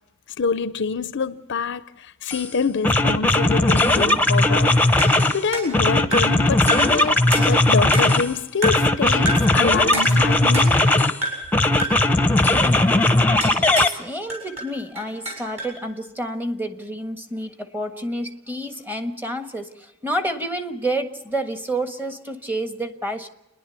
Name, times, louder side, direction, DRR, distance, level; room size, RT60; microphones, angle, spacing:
voice 1, 0.4-4.8 5.3-10.8, left 5 dB, 55° left, 0.6 m, -26 dB
sound 1, 2.3-2.5 2.8-5.4 5.7-8.3 8.6-11.2 11.5-13.9, left 2 dB, 10° left, 0.9 m, -18 dB
sound 2, 5.0-6.4 6.7-7.0 7.3-8.3 8.6-9.0 9.2-9.6 9.9-10.9 11.2-11.5 11.8-12.1 13.4-14.0 14.3-15.8, right 1 dB, 30° right, 7.5 m, -29 dB
voice 2, 13.9-23.3, right 1 dB, 10° right, 1.4 m, -29 dB
29.5 x 11.0 x 8.2 m
head